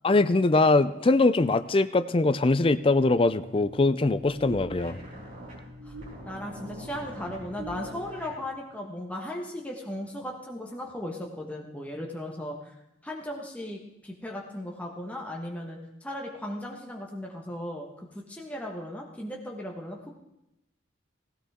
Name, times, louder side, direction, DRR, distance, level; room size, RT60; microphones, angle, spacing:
voice 1, 0.0-5.0, left 2 dB, 30° left, 13 dB, 0.4 m, -22 dB
sound 1, 2.7-8.4, equal, 45° right, 4.6 m, -43 dB
voice 2, 6.3-12.7 13.0-20.1, left 1 dB, 10° left, -1 dB, 1.4 m, -37 dB
17.0 x 16.0 x 3.7 m, 0.88 s
head